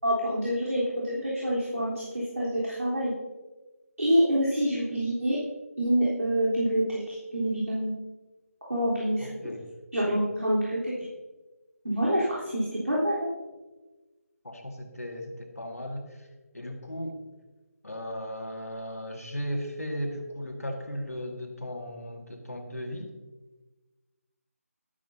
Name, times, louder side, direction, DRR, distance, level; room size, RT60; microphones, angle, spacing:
voice 1, 0.0-3.1 4.0-5.4 5.8-7.9 8.7-9.3 9.9-10.9 11.8-13.3, equal, 75° right, -8 dB, 3.7 m, -26 dB
voice 2, 9.2-9.7 14.4-16.1 16.5-17.2 17.8-23.1, equal, 70° left, 3 dB, 2.0 m, -36 dB
13.0 x 12.5 x 2.8 m, 1.2 s
figure-of-eight pair, 155°, 8 cm